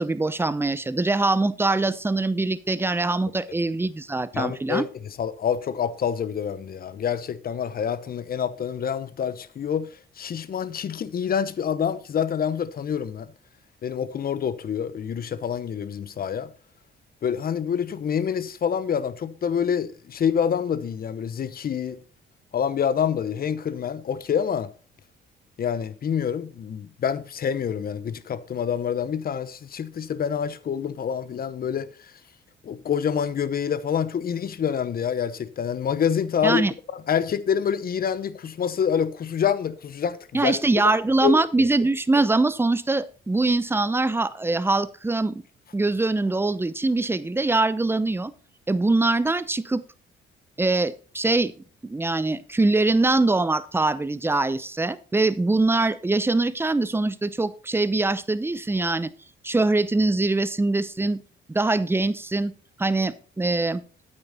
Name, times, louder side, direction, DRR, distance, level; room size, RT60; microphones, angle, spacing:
voice 1, 0.0-4.8 36.4-36.7 40.3-45.4 45.7-48.3 48.7-49.8 50.6-51.5 51.8-59.1 59.4-61.2 61.5-62.5 62.8-63.8, right 2 dB, 10° right, 0.6 m, -23 dB
voice 2, 4.3-13.3 13.8-16.5 17.2-22.0 22.5-24.7 25.6-32.1 32.6-36.6 36.9-40.6 40.8-40.9 41.2-41.3, left 8 dB, 50° left, 0.9 m, -27 dB
9.0 x 8.7 x 4.0 m
cardioid pair, 90°, 20 cm